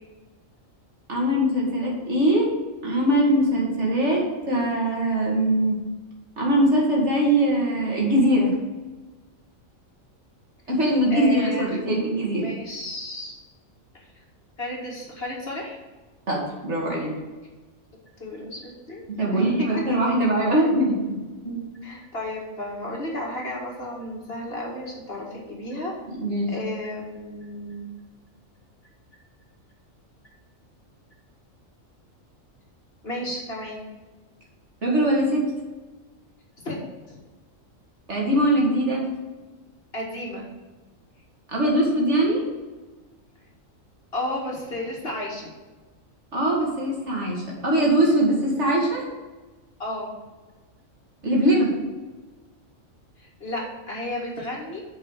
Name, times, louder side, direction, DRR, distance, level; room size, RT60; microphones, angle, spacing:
voice 1, 1.1-2.5 2.8-4.2 4.5-5.8 6.4-8.5 10.7-12.5 16.3-17.1 19.1-21.2 21.4-21.6 26.2-26.5 34.8-35.4 38.1-39.1 41.5-42.4 46.3-49.0 51.2-51.7, right 1 dB, 55° right, -3 dB, 2.6 m, -21 dB
voice 2, 11.1-11.6 12.4-13.4 14.6-15.8 18.2-19.8 21.8-25.9 26.5-27.9 33.0-33.9 36.6-36.8 37.1-37.2 39.9-40.5 44.1-45.5 49.8-50.1 53.2-54.8, left 1 dB, 45° left, -2 dB, 2.1 m, -33 dB
7.5 x 5.3 x 6.4 m, 1.2 s
omnidirectional pair, 1.4 m